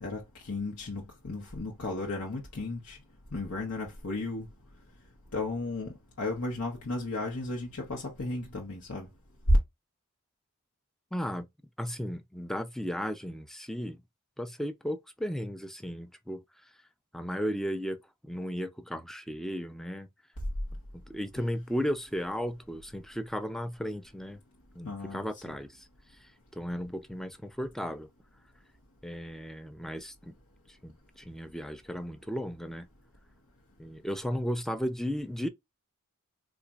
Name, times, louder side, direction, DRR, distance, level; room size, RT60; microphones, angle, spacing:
voice 1, 0.0-3.0 3.3-4.5 5.3-9.1 24.8-25.3, left 3 dB, 90° left, 0.9 m, -35 dB
voice 2, 11.1-11.5 11.8-14.0 14.4-16.4 17.1-18.0 18.2-20.1 20.9-24.4 24.8-25.9 26.5-28.1 29.0-30.4 30.7-32.9 33.8-35.5, equal, ahead, 0.3 m, -35 dB
4.0 x 2.4 x 2.3 m
head